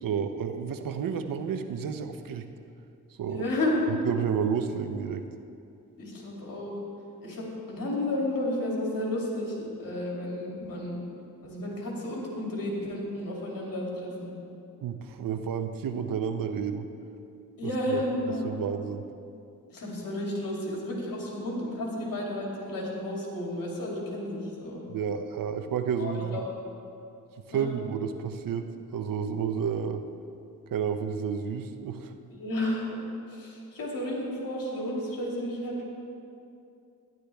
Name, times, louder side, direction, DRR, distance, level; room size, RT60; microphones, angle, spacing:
voice 1, 0.0-2.5 3.2-3.4 4.0-5.2 14.8-16.9 17.9-18.0 18.4-19.0 24.9-26.4 27.5-28.7 28.9-30.0 30.7-32.1, right 7 dB, 75° right, 8 dB, 0.7 m, -31 dB
voice 2, 3.2-3.8 6.0-6.7 7.2-11.0 11.4-14.3 17.6-18.6 19.7-24.8 26.0-26.4 27.5-27.7 32.3-32.8 33.3-35.8, left 1 dB, 75° left, -3 dB, 2.9 m, -32 dB
12.0 x 11.0 x 3.4 m, 2.6 s
cardioid pair, 75°, 34 cm